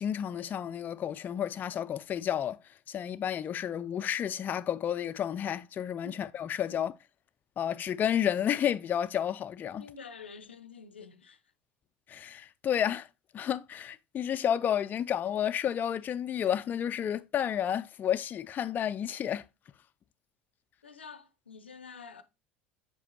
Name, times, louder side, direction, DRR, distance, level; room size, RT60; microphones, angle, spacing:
voice 1, 0.0-2.6 2.9-6.9 7.6-9.8 12.1-13.1 13.3-19.4, left 9 dB, 30° left, 0.4 m, -31 dB
voice 2, 9.8-11.5 20.8-22.2, left 5 dB, 85° left, 0.5 m, -48 dB
7.1 x 4.9 x 2.8 m
figure-of-eight pair, 70°, 6 cm